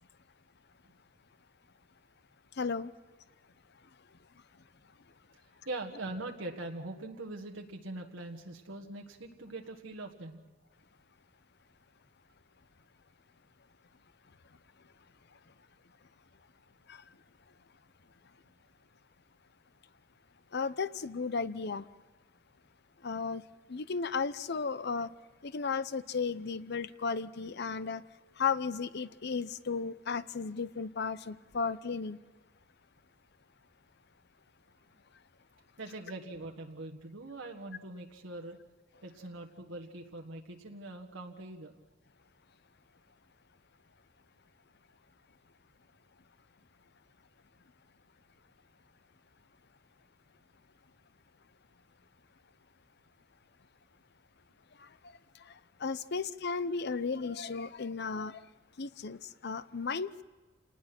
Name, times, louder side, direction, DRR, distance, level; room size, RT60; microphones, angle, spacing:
voice 1, 2.6-2.9 16.9-17.0 20.5-21.9 23.0-23.4 23.7-25.1 25.4-28.0 28.4-32.2 54.8-54.9 55.4-58.5 58.8-60.2, left 5 dB, 60° left, 0.8 m, -34 dB
voice 2, 5.6-10.4 35.8-38.6 39.0-41.8, right 2 dB, 80° right, 1.6 m, -42 dB
28.0 x 19.5 x 6.0 m
head